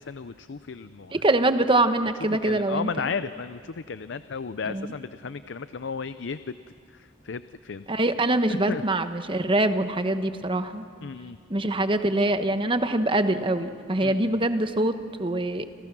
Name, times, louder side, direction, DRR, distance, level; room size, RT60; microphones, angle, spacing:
voice 1, 0.0-1.1 2.4-6.6 6.9-7.9 8.7-8.8 11.0-11.4 14.0-14.4, left 5 dB, 70° left, 13 dB, 0.6 m, -34 dB
voice 2, 1.1-3.1 4.6-4.9 7.9-10.9 11.5-15.7, right 2 dB, 25° right, 9 dB, 1.1 m, -24 dB
30.0 x 26.5 x 6.1 m, 2.3 s
head